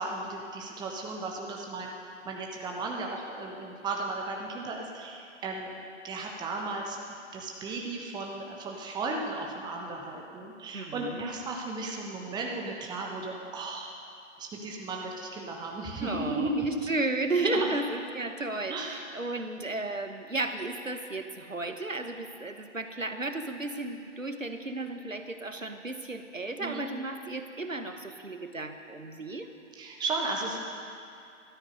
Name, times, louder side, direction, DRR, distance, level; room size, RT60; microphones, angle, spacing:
voice 1, 0.0-1.9 2.2-5.7 6.0-7.0 7.3-13.9 14.4-16.7 17.4-17.7 18.7-19.0 26.6-26.9 29.8-30.6, right 3 dB, 10° right, 0 dB, 1.2 m, -35 dB
voice 2, 10.7-11.3 16.0-29.5, right 2 dB, 90° right, 7 dB, 1.2 m, -34 dB
14.0 x 13.0 x 5.3 m, 2.5 s
figure-of-eight pair, 120°, 38 cm